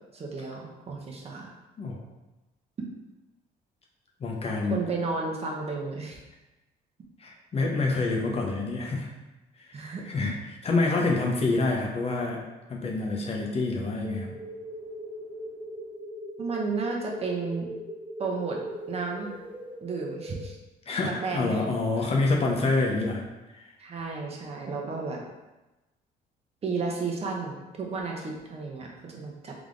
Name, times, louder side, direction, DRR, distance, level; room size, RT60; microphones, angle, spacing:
voice 1, 0.1-1.5 4.7-6.2 9.7-10.0 16.4-17.7 18.2-18.6 18.9-19.3 19.8-20.6 21.2-22.1 23.8-25.2 26.6-29.5, right 4 dB, 35° right, -1 dB, 0.9 m, -32 dB
voice 2, 4.2-4.8 7.2-9.1 9.7-10.4 10.6-12.4 12.7-14.3 20.9-23.2 23.5-23.6, left 3 dB, 35° left, -1 dB, 0.8 m, -27 dB
sound 1, 14.0-20.5, right 1 dB, 10° right, 0.5 m, -40 dB
3.6 x 3.5 x 3.7 m, 1.1 s
cardioid pair, 110°, 17 cm